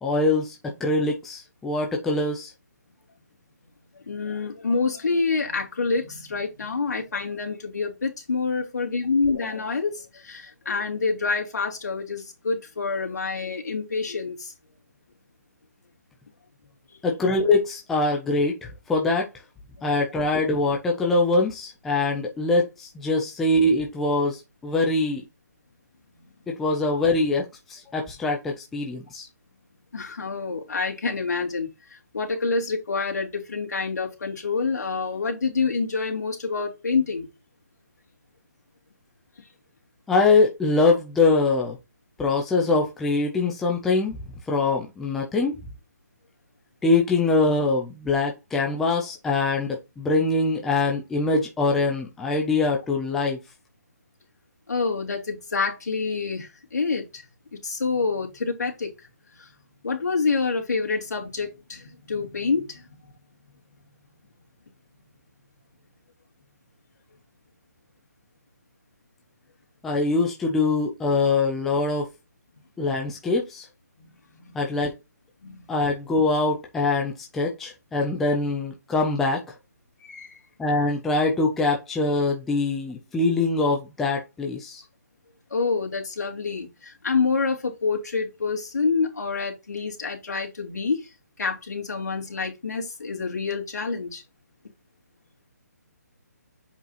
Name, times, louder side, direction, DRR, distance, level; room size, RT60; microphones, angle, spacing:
voice 1, 0.0-2.5 17.0-19.3 19.8-25.2 26.5-29.3 40.1-41.8 42.2-44.2 44.5-45.6 46.8-53.4 69.8-72.1 72.8-73.7 74.5-74.9 75.7-79.4 80.6-84.8, left 3 dB, ahead, 0.3 m, -23 dB
voice 2, 3.9-14.5 20.0-20.1 29.9-37.3 54.7-57.2 57.6-59.1 59.4-59.5 59.8-62.8 74.0-74.1 74.4-74.8 75.4-75.7 80.0-80.4 85.5-91.1 91.4-94.2, left 4 dB, 70° left, 2.9 m, -27 dB
7.4 x 5.5 x 2.8 m
hypercardioid pair, 175°, 9 cm